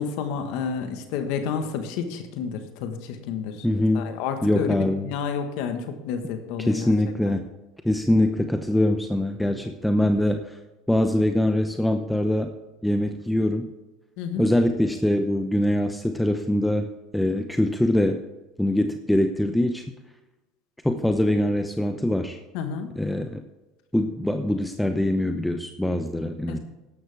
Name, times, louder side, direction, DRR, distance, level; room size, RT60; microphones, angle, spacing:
voice 1, 0.0-3.7 3.9-6.9 10.0-10.1 14.2-14.5 22.5-22.9 26.5-26.6, left 6 dB, 70° left, 6 dB, 1.4 m, -30 dB
voice 2, 3.6-4.1 4.4-5.1 6.6-7.5 7.8-10.5 10.9-12.5 12.8-13.7 14.4-18.2 18.6-19.8 20.8-22.4 23.0-23.4 23.9-26.6, left 1 dB, 5° left, 6 dB, 0.9 m, -23 dB
13.5 x 11.0 x 3.5 m, 1.1 s
hypercardioid pair, 90°, 0 cm